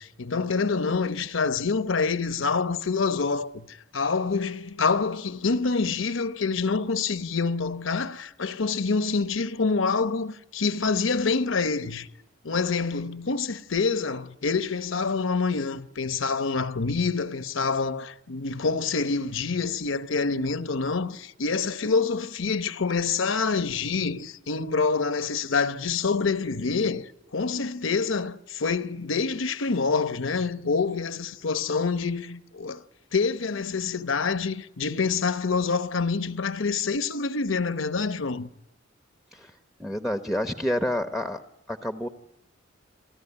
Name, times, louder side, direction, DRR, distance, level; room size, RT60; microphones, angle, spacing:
voice 1, 0.0-12.1 12.4-32.8 33.1-38.5, left 4 dB, 70° left, 0.9 m, -26 dB
voice 2, 39.8-41.4 41.7-42.1, left 1 dB, ahead, 0.9 m, -28 dB
28.5 x 14.0 x 9.9 m
head